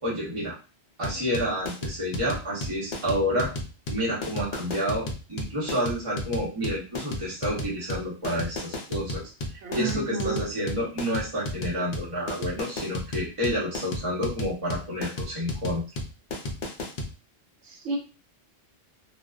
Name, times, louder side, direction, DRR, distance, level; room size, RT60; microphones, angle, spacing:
voice 1, 0.0-0.5 1.0-3.5 3.9-9.2 9.7-15.8, equal, 30° right, -5 dB, 0.9 m, -29 dB
sound 1, 1.0-17.1, left 1 dB, 55° left, 0.6 m, -33 dB
voice 2, 9.6-10.4 17.7-18.0, right 5 dB, 85° right, 0 dB, 1.0 m, -31 dB
2.4 x 2.3 x 2.3 m, 0.33 s
omnidirectional pair, 1.2 m